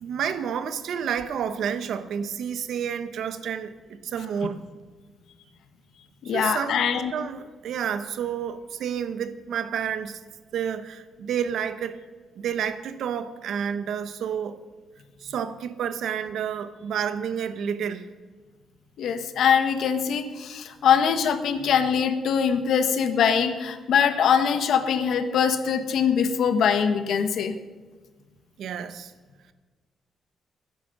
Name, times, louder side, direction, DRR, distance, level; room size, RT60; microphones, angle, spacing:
voice 1, 0.0-4.6 6.2-6.8 7.1-10.2 10.5-12.0 12.4-14.6 15.2-18.0 28.6-29.1, right 8 dB, 75° right, 12 dB, 1.0 m, -30 dB
voice 2, 6.2-7.1 19.0-27.6, left 7 dB, 75° left, 9 dB, 1.2 m, -23 dB
13.0 x 10.5 x 6.7 m, 1.4 s
cardioid pair, 130°, 0 cm